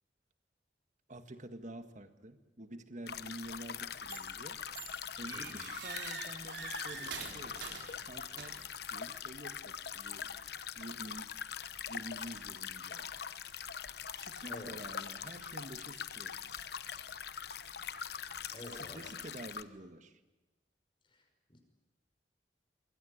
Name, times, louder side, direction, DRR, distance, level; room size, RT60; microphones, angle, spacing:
voice 1, 1.1-4.6 5.2-7.7 8.0-10.3 10.8-11.3 11.9-13.1 14.1-16.6 18.4-20.2, right 1 dB, 45° right, 9 dB, 1.8 m, -49 dB
sound 1, 3.1-19.6, left 7 dB, 65° left, 1.0 m, -43 dB
sound 2, 4.1-4.4 4.7-8.8, right 5 dB, 90° right, 3.9 m, -45 dB
voice 2, 5.3-5.6 14.4-14.7 18.1-19.1 21.1-21.2 21.5-21.6, left 1 dB, 30° left, 4 dB, 5.6 m, -49 dB
25.0 x 22.0 x 10.0 m, 1.1 s
head